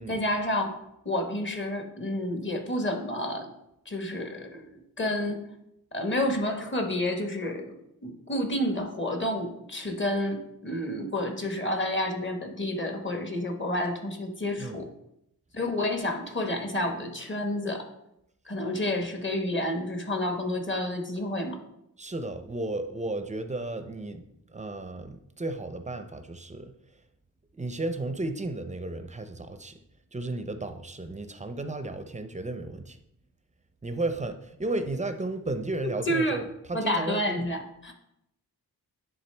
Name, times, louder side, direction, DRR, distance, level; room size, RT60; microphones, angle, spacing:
voice 1, 0.0-3.5 3.9-5.5 5.9-7.7 8.0-14.9 15.5-17.9 18.5-21.6 36.1-36.4 36.7-37.9, left 1 dB, 30° left, 4 dB, 1.0 m, -30 dB
voice 2, 22.0-26.7 27.5-29.8 30.1-33.0 33.8-37.5, right 2 dB, 20° right, 9 dB, 0.5 m, -34 dB
9.7 x 3.6 x 3.3 m, 0.80 s
wide cardioid pair, 95°, 36 cm